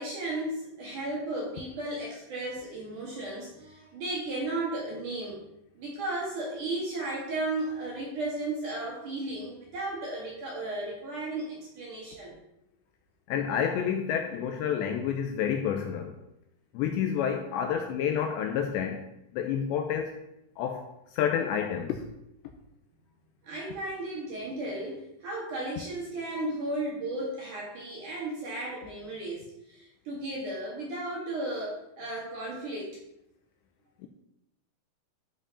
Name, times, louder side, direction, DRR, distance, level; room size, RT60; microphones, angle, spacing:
voice 1, 0.0-5.4 5.7-12.4 23.4-33.0, right 2 dB, 55° right, -3 dB, 2.7 m, -35 dB
voice 2, 13.3-16.2 16.7-19.0 19.3-20.2 20.6-20.8 21.1-22.0, left 8 dB, 85° left, 4 dB, 2.6 m, -29 dB
12.5 x 5.0 x 5.1 m, 0.83 s
omnidirectional pair, 5.7 m